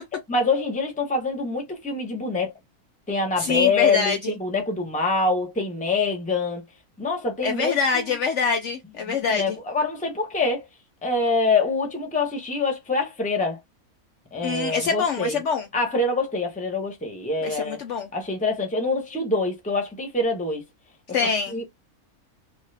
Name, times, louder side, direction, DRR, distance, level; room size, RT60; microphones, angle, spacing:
voice 1, 0.3-2.5 3.1-6.6 7.0-8.0 9.1-10.6 11.0-13.6 14.3-15.4 15.7-17.8 18.1-20.6 21.2-21.6, left 3 dB, 5° left, 0.7 m, -25 dB
voice 2, 3.4-4.3 7.4-9.6 14.4-15.7 17.4-18.1 21.1-21.6, left 5 dB, 65° left, 0.8 m, -25 dB
2.6 x 2.4 x 3.2 m
omnidirectional pair, 1.6 m